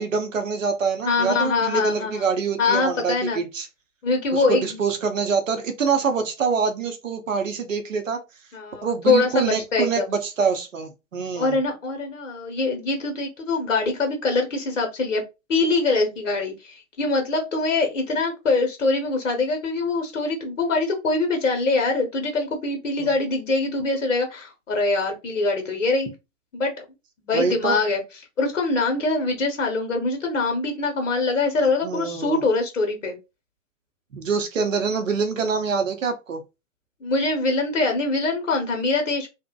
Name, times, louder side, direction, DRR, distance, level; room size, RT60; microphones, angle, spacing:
voice 1, 0.0-3.7 4.3-8.2 8.8-11.6 23.0-23.1 27.3-27.8 31.8-32.4 34.1-36.4, right 5 dB, 80° right, 0.6 m, -25 dB
voice 2, 1.1-2.2 2.6-3.4 4.0-4.8 8.5-10.0 11.3-15.2 15.5-26.1 26.5-26.8 27.2-28.0 28.4-33.1 37.0-39.3, left 3 dB, 75° left, 0.8 m, -23 dB
2.6 x 2.1 x 2.2 m
figure-of-eight pair, 115°, 38 cm